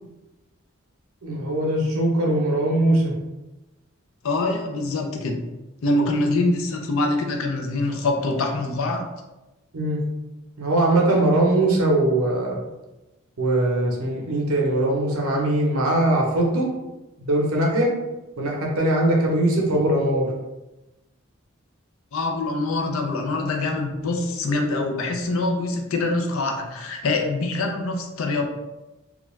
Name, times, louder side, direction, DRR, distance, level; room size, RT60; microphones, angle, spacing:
voice 1, 1.2-3.1 9.7-10.0 10.6-12.6 13.4-16.7 17.2-17.9 18.4-20.3, right 1 dB, 85° right, -2 dB, 0.6 m, -21 dB
voice 2, 4.2-5.4 5.8-9.1 22.1-28.5, left 2 dB, 70° left, 3 dB, 0.5 m, -24 dB
2.4 x 2.2 x 3.1 m, 1.0 s
head